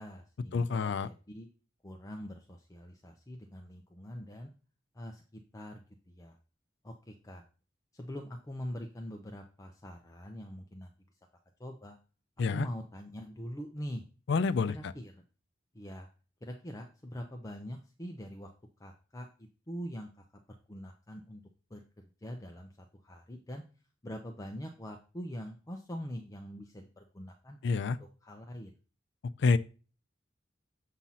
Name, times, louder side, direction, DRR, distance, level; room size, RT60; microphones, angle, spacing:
voice 1, 0.0-1.5 1.8-4.5 4.9-5.8 6.1-6.4 6.8-7.4 7.9-10.9 11.6-12.0 12.5-14.0 14.7-15.2 15.7-16.1 16.4-18.5 18.8-20.2 20.7-21.4 21.7-21.8 22.2-23.6 24.0-27.9 28.2-28.7, equal, 20° left, 0.6 m, -43 dB
voice 2, 0.5-1.1 12.4-12.7 14.3-14.9 27.6-28.0 29.4-29.6, left 4 dB, 65° left, 0.4 m, -28 dB
7.3 x 2.8 x 5.6 m
head